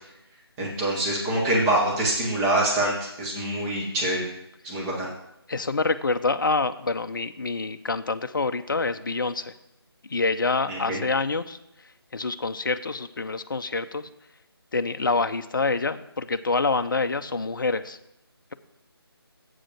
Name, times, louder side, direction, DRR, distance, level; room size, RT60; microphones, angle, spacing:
voice 1, 0.6-4.3 4.6-5.1 10.7-11.0, right 1 dB, 10° right, -4 dB, 1.0 m, -25 dB
voice 2, 5.5-9.5 10.1-11.6 12.1-14.1 14.7-18.0, left 3 dB, 55° left, 10 dB, 0.5 m, -26 dB
7.9 x 4.9 x 7.4 m, 0.83 s
figure-of-eight pair, 155°, 13 cm